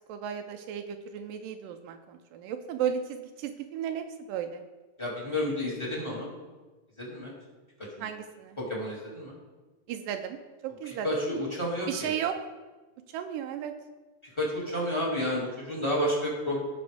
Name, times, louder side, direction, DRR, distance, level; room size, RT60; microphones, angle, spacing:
voice 1, 0.1-4.6 8.0-8.6 9.9-10.4 10.6-11.1 11.9-12.4 13.1-13.7, right 9 dB, 80° right, 7 dB, 2.2 m, -34 dB
voice 2, 5.0-6.3 7.0-7.3 8.0-8.1 8.6-9.4 10.8-12.1 14.4-16.6, left 1 dB, 10° left, -4 dB, 1.6 m, -30 dB
16.5 x 6.1 x 3.5 m, 1.2 s
omnidirectional pair, 3.9 m